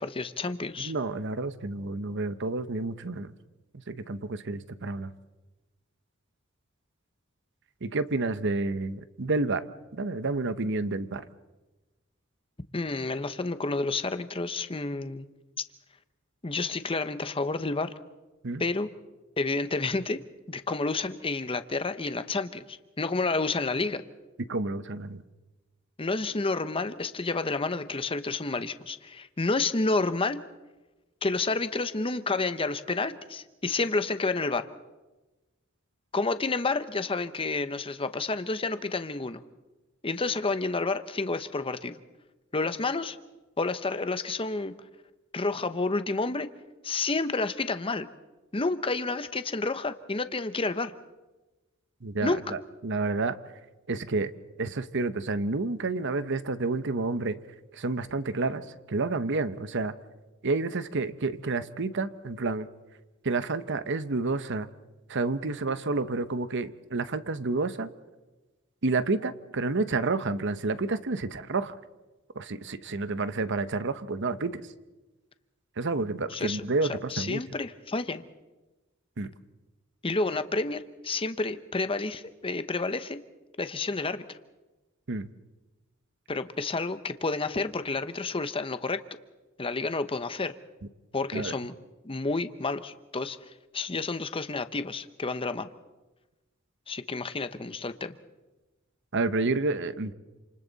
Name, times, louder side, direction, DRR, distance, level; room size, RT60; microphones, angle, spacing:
voice 1, 0.0-0.9 12.7-15.3 16.4-17.9 18.6-18.9 19.4-20.2 20.5-24.0 26.0-30.4 31.2-34.6 36.1-39.4 40.0-42.0 42.5-43.2 43.6-44.7 45.3-46.5 46.8-48.1 48.5-50.9 52.2-52.4 76.3-78.2 80.0-83.2 83.6-84.4 86.3-89.0 89.6-90.5 91.1-91.7 92.0-95.7 96.9-98.2, left 3 dB, 25° left, 11 dB, 0.9 m, -30 dB
voice 2, 0.8-3.3 3.7-5.1 7.8-9.6 9.9-11.2 18.4-18.6 24.5-25.2 52.0-53.4 53.9-54.3 54.6-57.4 57.7-59.9 60.4-62.7 63.2-64.7 65.1-67.9 68.8-71.7 72.4-74.6 75.8-77.4 79.2-79.3 85.1-85.3 91.3-91.5 99.1-100.1, right 3 dB, 60° right, 13 dB, 0.9 m, -29 dB
28.5 x 27.5 x 4.1 m, 1.1 s
head